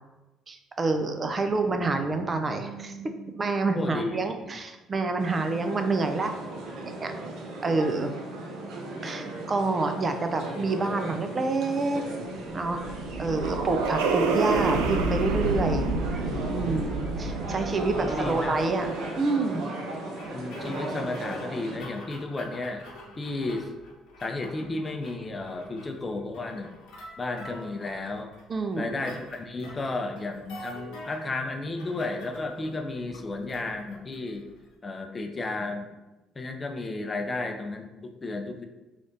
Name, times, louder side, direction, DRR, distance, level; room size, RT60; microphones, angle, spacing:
voice 1, 0.5-6.4 7.0-7.1 7.6-8.1 8.6-12.0 12.5-12.9 13.2-16.2 16.5-19.6 28.5-29.0, right 3 dB, 35° right, 6 dB, 0.5 m, -28 dB
voice 2, 3.7-4.5 18.0-18.5 20.3-22.8 23.2-23.7 24.2-26.7 27.2-28.3 28.8-34.4 34.8-35.9 36.4-38.7, left 2 dB, 30° left, 5 dB, 0.6 m, -33 dB
sound 1, 5.2-21.8, right 2 dB, 70° right, 0.8 m, -36 dB
sound 2, 12.3-18.8, right 3 dB, 85° right, 0.4 m, -28 dB
sound 3, 20.2-34.7, equal, 75° left, 0.9 m, -47 dB
3.4 x 2.5 x 3.8 m, 1.1 s
supercardioid pair, 65°, 0 cm